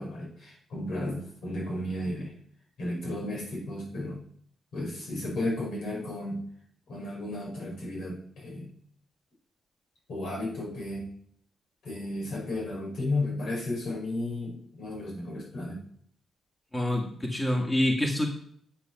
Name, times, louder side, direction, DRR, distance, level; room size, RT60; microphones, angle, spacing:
voice 1, 0.0-2.3 2.8-4.2 4.7-6.4 6.9-8.7 10.1-11.1 11.8-15.8, left 1 dB, 75° left, -3 dB, 5.5 m, -33 dB
voice 2, 16.7-18.3, left 1 dB, 20° left, 1 dB, 1.8 m, -26 dB
9.7 x 6.5 x 6.0 m, 0.63 s
cardioid pair, 90°, 0 cm